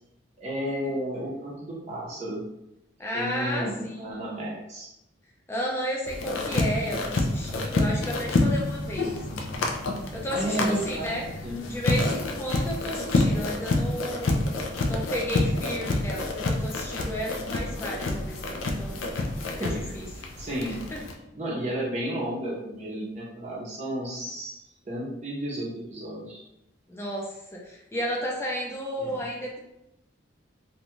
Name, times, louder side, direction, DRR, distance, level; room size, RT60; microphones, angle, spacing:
voice 1, 0.4-2.4 3.1-4.9 10.3-11.6 19.4-19.7 20.4-20.8 21.3-24.6 24.9-26.4 29.0-29.3, right 1 dB, 35° right, -5 dB, 0.6 m, -32 dB
voice 2, 3.0-4.5 5.5-9.1 10.1-11.2 11.7-14.4 14.8-19.0 19.6-20.1 20.7-21.0 26.9-29.6, equal, 15° left, -2 dB, 0.4 m, -33 dB
sound 1, 6.1-21.1, left 2 dB, 85° left, 0.4 m, -28 dB
2.6 x 2.2 x 2.9 m, 0.85 s
head